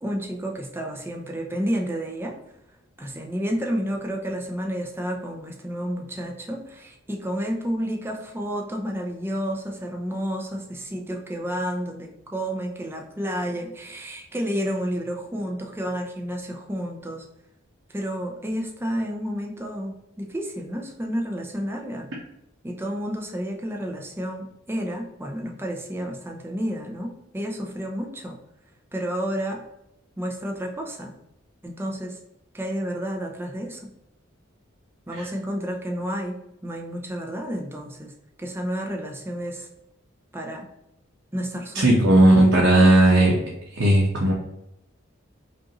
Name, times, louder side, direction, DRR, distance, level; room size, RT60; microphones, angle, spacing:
voice 1, 0.0-2.4 3.0-17.3 17.9-22.1 22.6-28.4 28.9-29.6 30.2-31.2 31.6-32.2 32.5-33.9 35.1-38.1 38.4-39.7 40.3-40.7 41.3-41.9, equal, 10° right, 1 dB, 0.6 m, -30 dB
voice 2, 41.7-43.3 43.7-44.3, right 1 dB, 80° right, -3 dB, 0.9 m, -16 dB
5.2 x 2.6 x 2.9 m, 0.82 s
head